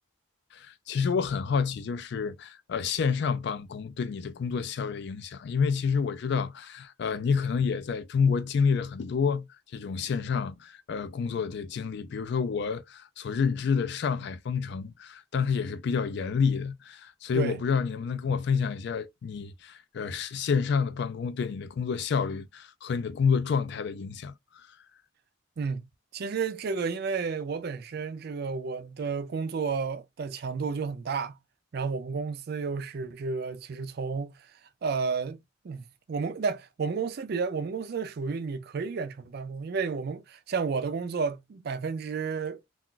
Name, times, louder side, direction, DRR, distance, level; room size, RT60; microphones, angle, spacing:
voice 1, 0.5-9.5 9.7-24.3, left 6 dB, 55° left, 0.3 m, -29 dB
voice 2, 26.1-31.4 31.7-34.5 34.8-42.6, right 5 dB, 50° right, 0.3 m, -32 dB
2.4 x 2.2 x 3.7 m
head